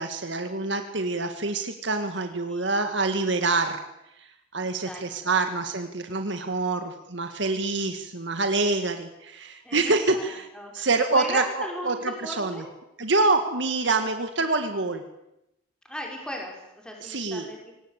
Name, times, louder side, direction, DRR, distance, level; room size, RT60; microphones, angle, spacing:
voice 1, 0.0-3.8 4.2-4.3 4.5-10.5 10.7-12.6 13.0-15.0 17.0-17.5, right 3 dB, 70° right, 7 dB, 1.9 m, -26 dB
voice 2, 4.9-5.4 9.6-12.7 15.9-17.7, equal, 5° left, 0 dB, 5.6 m, -37 dB
25.5 x 18.5 x 8.3 m, 0.87 s
head